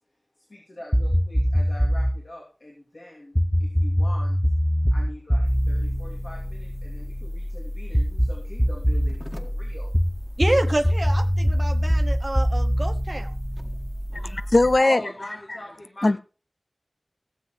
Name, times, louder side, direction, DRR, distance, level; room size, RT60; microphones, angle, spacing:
voice 1, 0.4-4.4 4.9-9.9 14.8-16.2, left 1 dB, 85° left, 2.9 m, -42 dB
sound 1, 0.9-2.2 3.4-7.1 7.9-9.2 9.9-13.9, equal, ahead, 1.0 m, -23 dB
sound 2, 5.4-14.8, equal, 15° left, 1.6 m, -34 dB
voice 2, 10.4-13.3, right 1 dB, 55° right, 1.2 m, -28 dB
voice 3, 14.1-15.0 16.0-16.2, left 2 dB, 70° left, 0.5 m, -19 dB
17.0 x 7.7 x 4.6 m
wide cardioid pair, 45°, 0 cm